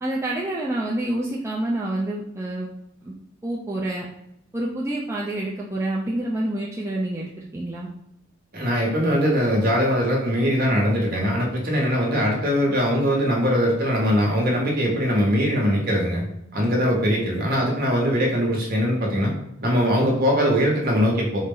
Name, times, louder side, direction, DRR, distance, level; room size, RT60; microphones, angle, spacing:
voice 1, 0.0-2.7 3.0-3.1 3.4-4.1 4.5-7.9, right 1 dB, 15° right, -4 dB, 0.4 m, -27 dB
voice 2, 8.5-16.2 16.5-19.3 19.6-21.4, equal, 45° right, -1 dB, 0.9 m, -21 dB
4.2 x 2.0 x 3.7 m, 0.78 s
head